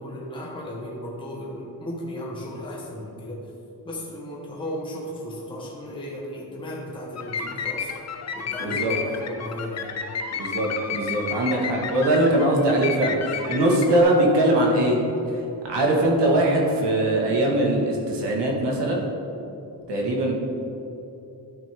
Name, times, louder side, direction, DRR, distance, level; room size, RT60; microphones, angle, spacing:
voice 1, 0.0-3.5 3.8-7.9 8.3-9.9, equal, 10° left, -4 dB, 1.0 m, -35 dB
sound 1, 7.2-14.0, left 6 dB, 40° left, 0.6 m, -32 dB
voice 2, 8.6-8.9 10.4-15.0 15.6-19.0 19.9-20.3, right 1 dB, 75° right, -1 dB, 1.6 m, -21 dB
12.5 x 6.2 x 3.5 m, 3.0 s
wide cardioid pair, 155°, 42 cm